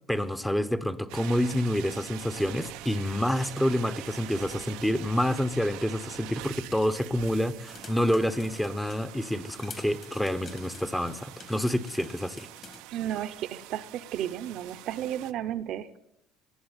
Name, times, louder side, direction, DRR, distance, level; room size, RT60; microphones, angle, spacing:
voice 1, 0.1-12.5, equal, 5° left, 11 dB, 0.8 m, -28 dB
sound 1, 1.1-15.3, right 16 dB, 85° right, 0.6 m, -44 dB
sound 2, 7.7-9.1 9.6-12.8, left 5 dB, 35° left, 1.5 m, -48 dB
voice 2, 12.9-16.0, right 11 dB, 60° right, 11 dB, 0.8 m, -33 dB
19.5 x 7.7 x 8.9 m, 0.85 s
cardioid pair, 140°, 0 cm